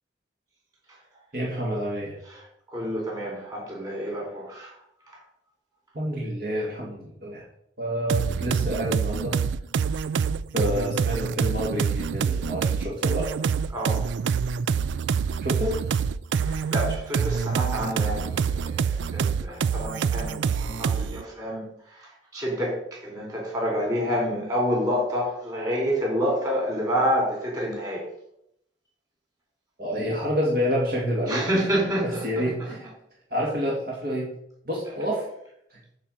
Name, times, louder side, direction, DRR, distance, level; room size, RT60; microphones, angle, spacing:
voice 1, 1.3-2.2 5.9-7.4 7.8-9.4 10.5-13.3 15.4-15.8 29.8-31.5 32.0-32.9 33.3-34.3 34.7-35.3 35.7-35.8, equal, 55° right, -4 dB, 2.2 m, -28 dB
voice 2, 2.3-4.8 13.7-14.0 16.3-28.1 31.3-32.5, equal, 20° right, -2 dB, 3.9 m, -28 dB
sound 1, 8.1-21.2, right 6 dB, 80° right, 0.4 m, -26 dB
9.1 x 4.6 x 7.5 m, 0.76 s
head